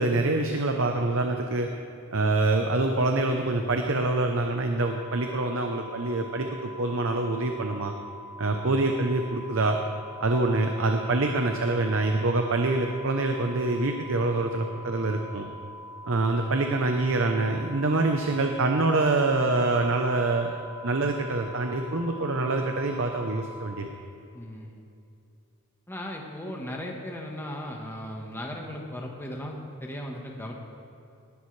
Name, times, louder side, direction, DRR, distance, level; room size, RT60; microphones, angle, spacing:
voice 1, 0.0-1.7 2.1-7.9 8.4-9.8 10.2-15.5 16.1-20.6 20.8-23.9, right 2 dB, 60° right, 4 dB, 0.8 m, -25 dB
sound 1, 4.8-23.8, equal, 75° left, 0.9 m, -44 dB
voice 2, 24.3-24.8 25.9-30.5, left 1 dB, 10° left, 0 dB, 1.2 m, -37 dB
19.0 x 11.5 x 3.3 m, 2.7 s
head